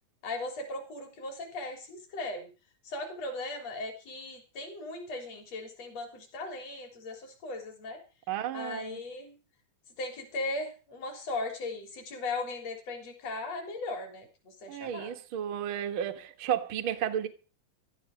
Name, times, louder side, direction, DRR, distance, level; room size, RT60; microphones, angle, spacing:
voice 1, 0.2-2.5 2.8-8.0 8.5-9.4 10.0-15.1, left 2 dB, 40° left, 4.4 m, -38 dB
voice 2, 8.3-9.0 14.7-17.3, right 10 dB, 75° right, 1.2 m, -33 dB
16.5 x 13.0 x 4.9 m
omnidirectional pair, 4.7 m